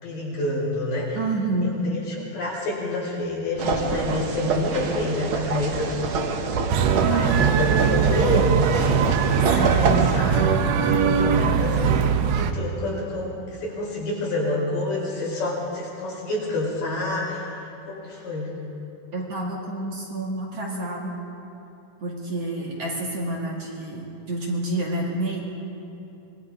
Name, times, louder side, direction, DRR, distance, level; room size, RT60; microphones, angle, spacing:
voice 1, 0.0-1.2 1.6-10.5 10.9-11.9 12.3-17.5 17.9-18.6 22.6-22.8, left 2 dB, 65° left, -5 dB, 6.8 m, -28 dB
voice 2, 1.1-1.7 7.0-7.3 9.4-10.0 19.1-21.1 22.0-25.4, right 2 dB, 45° right, -3 dB, 3.0 m, -28 dB
sound 1, 3.6-10.2, right 4 dB, 70° right, 1.2 m, -27 dB
sound 2, 6.7-12.5, right 7 dB, 90° right, 1.4 m, -21 dB
25.5 x 21.0 x 5.1 m, 2.9 s
omnidirectional pair, 4.1 m